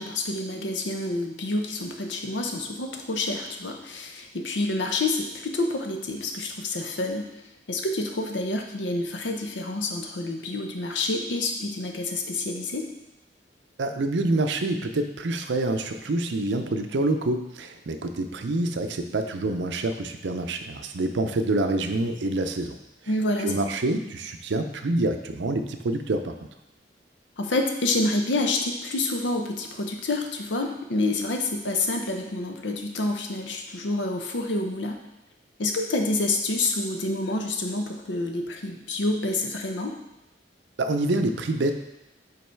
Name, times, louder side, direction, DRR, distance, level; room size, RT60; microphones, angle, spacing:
voice 1, 0.0-7.3 7.7-12.9 23.1-23.6 27.4-35.0 35.6-39.9, left 2 dB, 75° left, 4 dB, 0.7 m, -28 dB
voice 2, 13.8-22.8 23.4-26.3 40.8-41.7, right 2 dB, 70° right, 7 dB, 0.5 m, -26 dB
5.3 x 4.0 x 4.5 m, 0.94 s
head